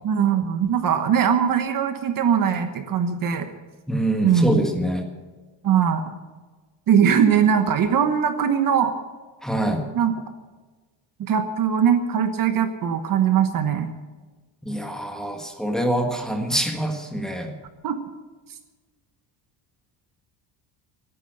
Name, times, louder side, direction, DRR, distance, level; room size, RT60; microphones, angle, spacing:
voice 1, 0.0-3.5 4.2-4.6 5.6-6.0 6.9-8.9 9.9-10.2 11.2-13.9 17.8-18.0, right 8 dB, 45° right, 8 dB, 1.2 m, -20 dB
voice 2, 3.9-5.0 9.4-9.8 14.6-17.5, right 1 dB, ahead, 2 dB, 1.7 m, -25 dB
17.0 x 9.8 x 7.8 m, 1.3 s
cardioid pair, 170°, 46 cm